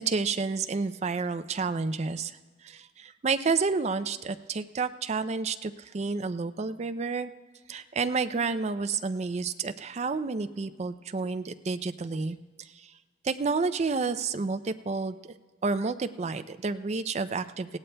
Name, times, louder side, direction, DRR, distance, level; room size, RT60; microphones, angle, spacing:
voice 1, 0.0-7.3 7.7-12.4 12.7-12.9 13.2-15.3 15.6-17.8, right 4 dB, 40° right, 11 dB, 0.4 m, -30 dB
20.0 x 16.5 x 2.2 m, 1.4 s
head